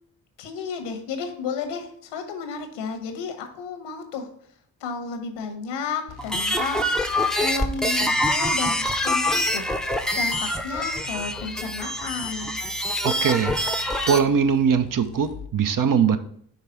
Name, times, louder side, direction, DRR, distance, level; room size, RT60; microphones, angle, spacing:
voice 1, 0.4-4.3 4.8-7.0 7.4-9.7 10.2-12.6, left 5 dB, 90° left, 6 dB, 1.1 m, -32 dB
sound 1, 6.1-15.5, left 4 dB, 65° left, 0.6 m, -45 dB
sound 2, 6.2-14.2, left 1 dB, ahead, 0.6 m, -25 dB
voice 2, 13.0-13.5 14.1-16.2, right 7 dB, 50° right, 10 dB, 0.7 m, -21 dB
5.6 x 3.5 x 5.7 m, 0.63 s
supercardioid pair, 55°, 42 cm